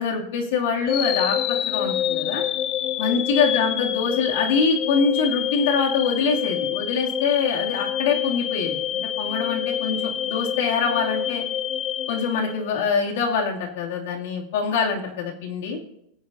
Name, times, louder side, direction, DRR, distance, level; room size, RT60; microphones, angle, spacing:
voice 1, 0.0-1.4 1.7-2.4 3.0-11.4 12.1-15.8, left 5 dB, 70° left, 0 dB, 2.5 m, -24 dB
sound 1, 0.9-13.0, left 11 dB, 30° left, 0.5 m, -27 dB
20.5 x 8.4 x 2.7 m, 0.77 s
supercardioid pair, 155°, 0 cm